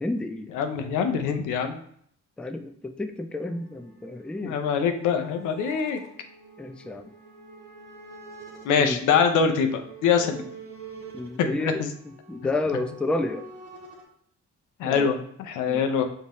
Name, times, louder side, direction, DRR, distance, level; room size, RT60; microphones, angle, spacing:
voice 1, 0.0-0.5 2.4-4.6 6.6-7.1 8.8-9.0 11.1-13.5 14.8-15.1 15.7-15.9, left 2 dB, 5° left, 6 dB, 0.3 m, -31 dB
voice 2, 0.5-1.8 4.4-6.0 8.6-10.4 11.4-11.9 14.8-16.0, left 6 dB, 90° left, 6 dB, 0.7 m, -24 dB
sound 1, 3.4-14.0, right 3 dB, 85° right, 1.0 m, -47 dB
5.5 x 2.8 x 3.1 m, 0.65 s
cardioid pair, 90°, 30 cm